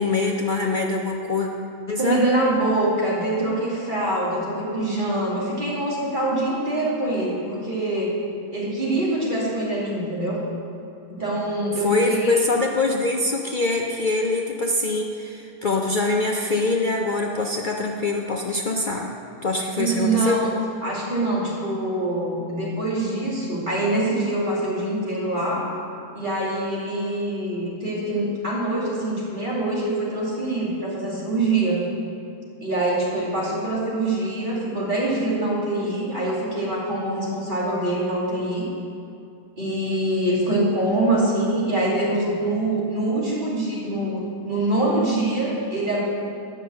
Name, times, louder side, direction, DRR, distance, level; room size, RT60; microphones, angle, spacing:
voice 1, 0.0-1.5 1.9-2.2 11.8-19.1 19.4-20.3, left 3 dB, 75° left, 0 dB, 0.4 m, -24 dB
voice 2, 2.0-8.1 8.5-10.4 11.1-12.4 19.8-20.5 20.8-25.8 26.1-31.8 32.6-38.7 39.6-46.0, right 2 dB, 30° right, -7 dB, 2.8 m, -24 dB
9.9 x 6.3 x 7.6 m, 2.6 s
omnidirectional pair, 1.8 m